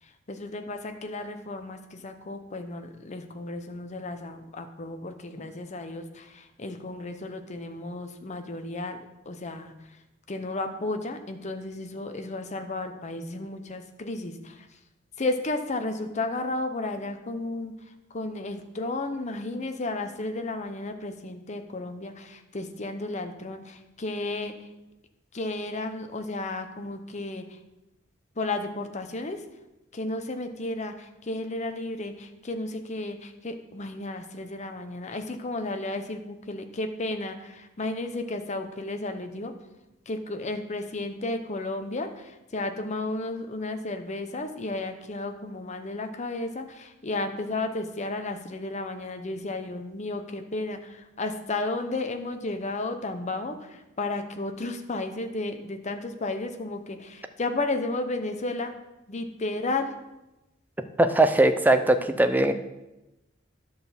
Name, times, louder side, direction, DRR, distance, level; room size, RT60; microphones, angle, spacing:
voice 1, 0.0-10.0 10.3-14.7 15.2-24.7 25.3-27.6 28.4-29.4 29.9-39.5 40.1-58.7 59.1-59.9, left 2 dB, 35° left, 6 dB, 0.8 m, -33 dB
voice 2, 61.0-62.5, right 2 dB, 10° right, 9 dB, 0.5 m, -20 dB
10.5 x 4.0 x 6.9 m, 0.98 s
head